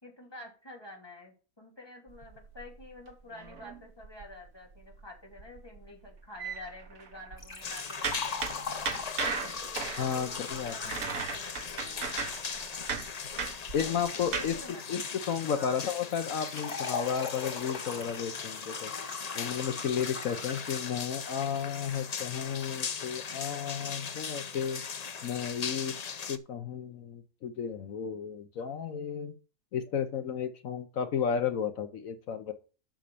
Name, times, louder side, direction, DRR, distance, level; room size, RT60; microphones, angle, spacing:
voice 1, 0.0-8.5 10.1-12.2 13.8-14.8 15.5-15.8, left 1 dB, 15° left, 0 dB, 2.9 m, -49 dB
sound 1, 2.1-4.5 4.8-5.0 5.3-7.5 8.0-14.6, right 5 dB, 65° right, 1.7 m, -37 dB
Liquid, 7.4-12.4 16.1-20.9 21.2-21.3 22.2-22.3, left 4 dB, 85° left, 3.1 m, -41 dB
sound 2, 7.6-26.4, left 6 dB, 45° left, 0.5 m, -39 dB
voice 2, 10.0-10.7 13.7-14.6 14.9-18.9 19.3-24.8 25.2-29.3 29.7-32.5, left 7 dB, 65° left, 9 dB, 1.2 m, -33 dB
7.6 x 6.4 x 7.0 m, 0.35 s
omnidirectional pair, 1.5 m